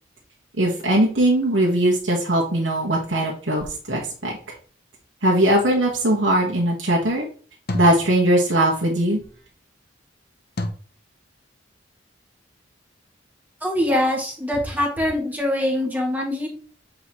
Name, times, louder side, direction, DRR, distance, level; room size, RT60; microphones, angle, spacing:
voice 1, 0.6-4.3 5.2-7.3 7.7-9.2, right 1 dB, 80° right, -3 dB, 1.5 m, -20 dB
sound 1, 5.7-6.1 7.7-8.9 10.6-10.7, left 1 dB, 55° left, 0.9 m, -32 dB
voice 2, 13.6-16.5, left 1 dB, 10° right, -1 dB, 1.7 m, -23 dB
8.1 x 3.9 x 3.1 m, 0.41 s
head